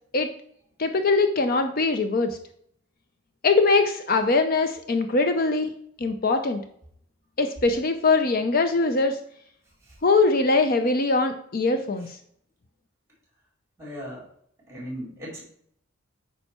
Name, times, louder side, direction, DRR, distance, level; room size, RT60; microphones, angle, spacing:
voice 1, 0.8-2.4 3.4-5.7 6.0-6.6 7.4-9.2 10.0-12.1, left 3 dB, 45° left, 8 dB, 0.6 m, -22 dB
voice 2, 13.8-14.2 14.7-15.4, equal, 15° right, -3 dB, 3.9 m, -36 dB
8.8 x 5.6 x 4.3 m, 0.66 s
head